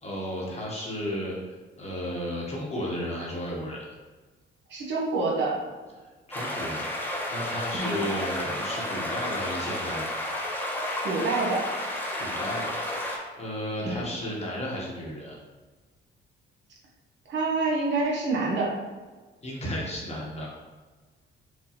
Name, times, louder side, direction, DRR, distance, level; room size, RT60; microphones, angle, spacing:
voice 1, 0.0-1.3 1.8-3.9 6.0-10.2 12.2-12.8 13.4-15.4 19.4-20.5, equal, 35° left, -4 dB, 1.1 m, -33 dB
voice 2, 4.7-5.6 7.8-8.0 11.0-11.6 13.8-14.0 17.3-18.8, right 3 dB, 65° right, -2 dB, 1.0 m, -27 dB
sound 1, 6.3-13.2, left 1 dB, 10° left, 0.7 m, -32 dB
4.5 x 2.3 x 2.9 m, 1.3 s
cardioid pair, 90°, 20 cm